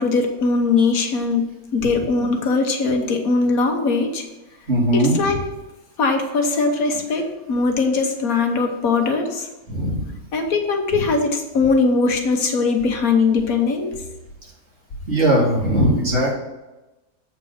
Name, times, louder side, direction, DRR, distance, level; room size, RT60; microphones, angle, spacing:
voice 1, 0.0-1.4 1.7-4.2 4.9-5.4 6.0-9.5 10.3-14.0, left 4 dB, 85° left, 4 dB, 1.6 m, -20 dB
voice 2, 4.7-5.2 9.7-10.0 15.1-16.3, right 1 dB, 50° right, -5 dB, 2.7 m, -18 dB
7.9 x 4.5 x 6.4 m, 1.0 s
omnidirectional pair, 1.5 m